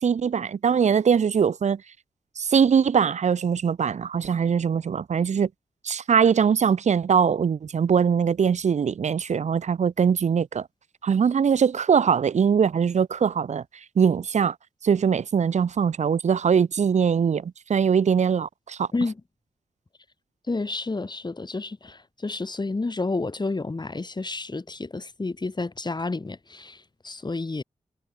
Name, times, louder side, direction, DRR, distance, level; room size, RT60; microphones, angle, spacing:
voice 1, 0.0-1.8 2.4-5.5 5.8-10.7 11.0-13.6 14.0-14.5 14.8-18.9, right 7 dB, 65° right, 1.1 m, -22 dB
voice 2, 20.5-27.6, left 3 dB, 35° left, 5.6 m, -30 dB
cardioid pair, 60°, 13 cm